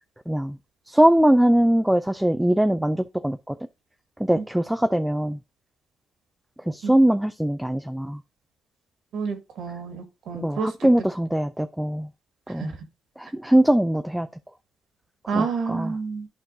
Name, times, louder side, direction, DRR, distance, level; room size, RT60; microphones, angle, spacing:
voice 1, 0.3-0.6 0.9-3.6 4.2-5.4 6.6-8.2 10.3-12.1 12.5-12.7 13.2-14.3 15.3-16.0, right 1 dB, 5° right, 0.4 m, -21 dB
voice 2, 9.1-10.7 12.6-12.7 15.3-16.3, right 4 dB, 75° right, 1.7 m, -29 dB
11.0 x 4.5 x 2.6 m
cardioid pair, 90°, 0 cm